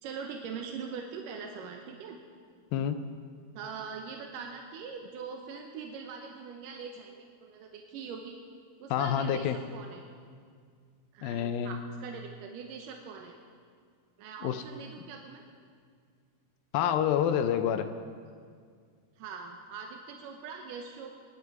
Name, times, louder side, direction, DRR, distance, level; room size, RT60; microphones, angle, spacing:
voice 1, 0.0-2.2 3.5-8.4 8.8-10.0 11.1-13.4 14.2-15.4 19.2-21.2, right 5 dB, 75° right, 3 dB, 2.1 m, -42 dB
voice 2, 8.9-9.6 11.2-11.8 14.4-14.6 16.7-17.9, left 9 dB, 80° left, 9 dB, 2.2 m, -28 dB
25.5 x 11.0 x 4.8 m, 2.1 s
omnidirectional pair, 4.7 m